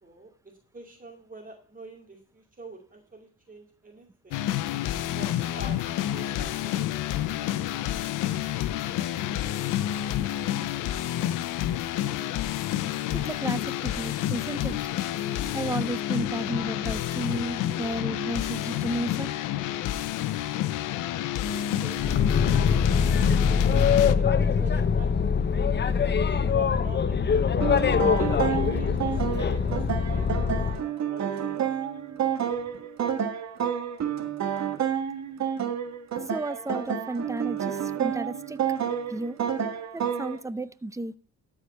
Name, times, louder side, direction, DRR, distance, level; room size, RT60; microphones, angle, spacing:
voice 1, 0.0-4.5 5.1-8.0 21.4-22.1 23.3-27.3 27.9-30.3 30.7-31.6, right 2 dB, 25° right, 2.4 m, -44 dB
sound 1, 4.3-24.1, left 12 dB, 90° left, 0.8 m, -29 dB
voice 2, 13.1-14.8 15.5-19.3 36.3-38.6 39.1-39.4 39.9-41.1, right 2 dB, 10° right, 0.7 m, -33 dB
Boat Water vehicle, 22.0-30.8, left 6 dB, 35° left, 0.9 m, -23 dB
sound 2, 27.6-40.4, right 8 dB, 65° right, 1.6 m, -30 dB
13.0 x 5.1 x 5.2 m
cardioid pair, 90°, 30 cm